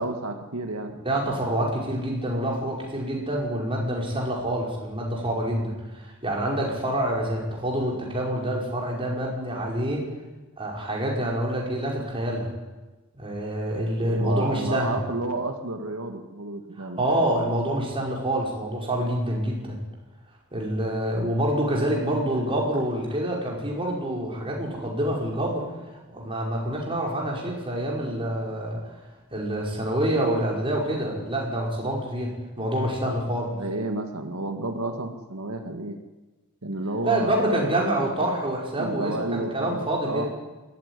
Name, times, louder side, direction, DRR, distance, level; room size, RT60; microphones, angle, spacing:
voice 1, 0.0-0.9 14.0-17.0 33.5-36.0 36.6-37.8 38.7-40.3, right 2 dB, 90° right, 5 dB, 2.0 m, -31 dB
voice 2, 0.9-10.1 10.6-12.5 13.1-15.0 16.8-19.8 20.5-25.7 26.1-28.8 29.3-33.6 37.0-40.3, right 1 dB, 25° right, -2 dB, 5.6 m, -27 dB
22.0 x 15.0 x 9.9 m, 1.2 s
head